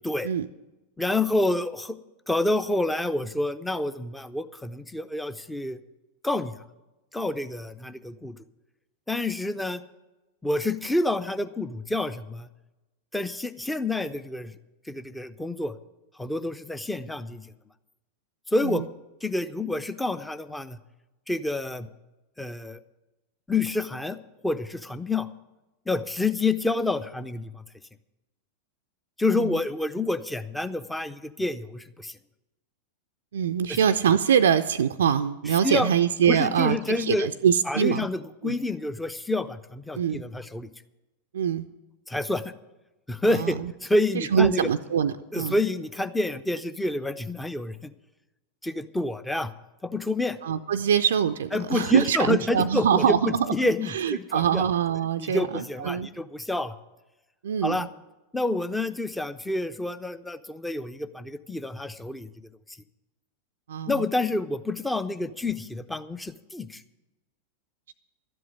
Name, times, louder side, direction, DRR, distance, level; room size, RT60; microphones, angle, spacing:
voice 1, 1.0-1.9 2.3-5.8 6.2-6.5 7.1-8.4 9.1-9.8 10.4-12.5 13.1-14.5 14.9-15.7 16.2-17.4 18.5-18.8 19.2-20.8 21.3-21.9 22.4-22.8 23.5-24.2 24.4-25.3 25.9-27.6 29.2-32.1 33.7-33.8 35.6-35.9 36.3-37.3 37.7-40.7 42.1-42.4 43.1-44.7 45.3-47.9 48.6-49.5 49.8-50.4 51.5-53.2 53.5-54.6 55.2-56.7 57.6-57.9 58.3-62.3 63.9-66.8, left 2 dB, 5° left, 12 dB, 0.6 m, -28 dB
voice 2, 33.3-38.0 38.4-38.5 40.0-40.2 41.3-41.7 43.3-43.7 44.1-45.6 50.4-53.5 53.9-56.1 57.4-57.9 63.7-63.9, right 8 dB, 65° right, 9 dB, 0.4 m, -24 dB
12.5 x 7.8 x 9.2 m, 1.1 s
figure-of-eight pair, 90°, 0 cm